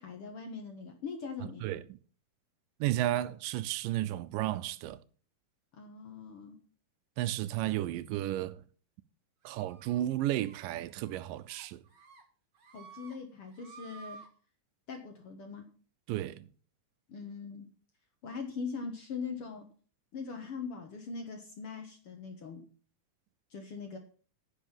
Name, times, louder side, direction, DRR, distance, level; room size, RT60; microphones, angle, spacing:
voice 1, 0.0-1.6 5.7-6.6 12.7-14.2 14.9-15.7 17.1-17.7 18.2-19.7 20.1-22.7 23.5-24.0, left 5 dB, 55° left, 1.7 m, -41 dB
voice 2, 1.4-2.0 2.8-5.0 7.2-8.6 9.4-11.8 16.1-16.5, right 14 dB, 85° right, 2.3 m, -33 dB
sound 1, 9.4-10.0 10.4-10.6 10.9-11.2 11.5-12.2 12.5-13.1 13.5-14.3, right 5 dB, 45° right, 2.3 m, -53 dB
10.5 x 6.2 x 7.2 m
omnidirectional pair, 3.9 m